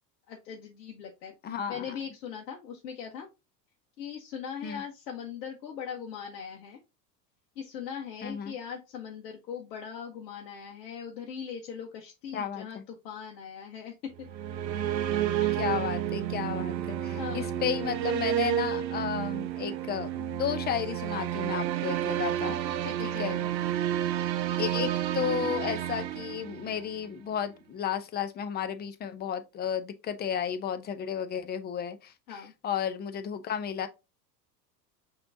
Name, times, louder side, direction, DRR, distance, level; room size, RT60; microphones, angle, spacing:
voice 1, 0.3-1.3 1.7-3.3 4.0-6.8 7.6-14.3 15.1-15.6 17.1-17.5 22.8-23.4 32.3-32.5, left 7 dB, 70° left, 1.1 m, -40 dB
voice 2, 1.4-1.9 4.6-4.8 8.2-8.6 12.3-12.8 15.6-22.6 23.0-23.4 24.6-33.9, left 8 dB, 20° left, 0.5 m, -33 dB
sound 1, 14.2-27.0, right 11 dB, 85° right, 0.6 m, -30 dB
5.9 x 3.0 x 2.6 m
hypercardioid pair, 85°, 50 cm